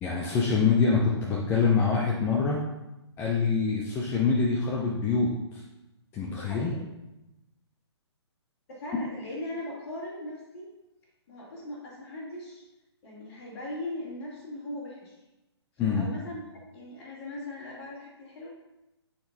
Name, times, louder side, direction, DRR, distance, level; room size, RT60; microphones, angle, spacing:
voice 1, 0.0-2.6 3.2-5.6 6.1-6.7 15.8-16.1, left 5 dB, 15° left, -3 dB, 0.6 m, -25 dB
voice 2, 6.3-6.8 8.7-10.7 11.3-12.6 13.0-15.2 15.9-18.5, left 1 dB, 35° left, -10 dB, 2.6 m, -39 dB
12.0 x 4.1 x 2.8 m, 0.97 s
figure-of-eight pair, 135°, 15 cm